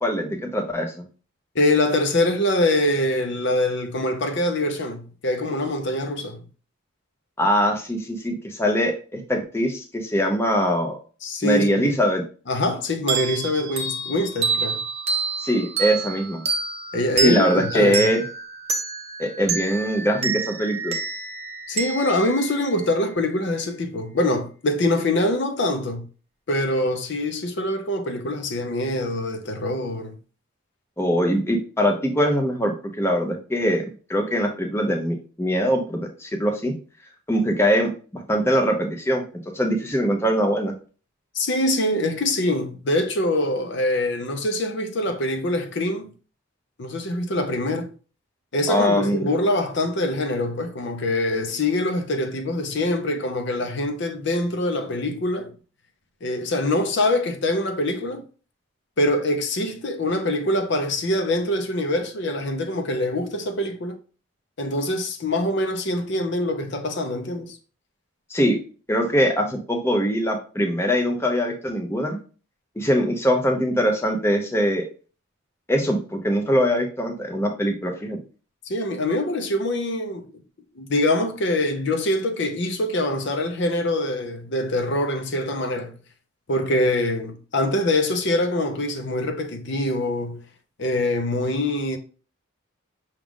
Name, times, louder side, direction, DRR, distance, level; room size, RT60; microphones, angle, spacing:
voice 1, 0.0-1.0 7.4-11.0 11.4-12.2 15.4-16.4 17.2-18.2 19.2-20.9 31.0-36.7 37.3-39.2 39.5-40.7 48.7-49.3 68.3-68.6 68.9-72.2 72.8-74.8 75.7-78.2, equal, 10° left, 0.6 m, -22 dB
voice 2, 1.5-6.5 11.2-11.9 12.5-14.9 16.9-18.1 21.7-26.1 26.5-30.2 41.3-46.1 46.8-47.9 48.5-55.5 56.2-58.2 59.0-64.0 64.6-67.6 78.7-80.3 80.7-85.9 86.5-90.4 90.8-92.0, left 1 dB, 55° left, 0.6 m, -24 dB
sound 1, 13.1-23.4, right 4 dB, 30° right, 0.7 m, -28 dB
6.0 x 2.4 x 3.6 m
head